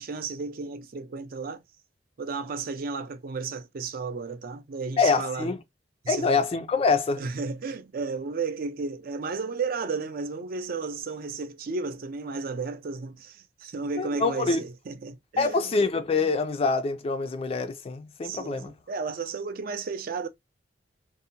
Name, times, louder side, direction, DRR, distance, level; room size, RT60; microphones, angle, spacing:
voice 1, 0.0-1.6 2.2-5.5 6.0-6.4 7.2-15.7 18.2-20.3, right 4 dB, 55° right, 0.4 m, -33 dB
voice 2, 5.0-5.6 6.1-7.2 14.0-14.6 15.4-18.7, left 4 dB, 35° left, 0.3 m, -25 dB
2.7 x 2.0 x 2.7 m
head